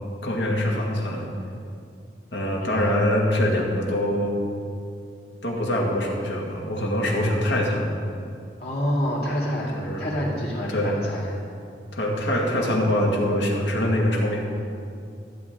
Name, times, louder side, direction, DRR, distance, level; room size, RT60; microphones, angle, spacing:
voice 1, 0.2-1.3 2.3-4.4 5.4-7.9 9.7-10.0 10.7-10.9 11.9-14.4, left 1 dB, 80° left, -1 dB, 1.8 m, -24 dB
voice 2, 2.6-3.0 8.6-11.3, equal, 60° left, -5 dB, 2.7 m, -27 dB
15.0 x 8.4 x 3.6 m, 2.5 s
head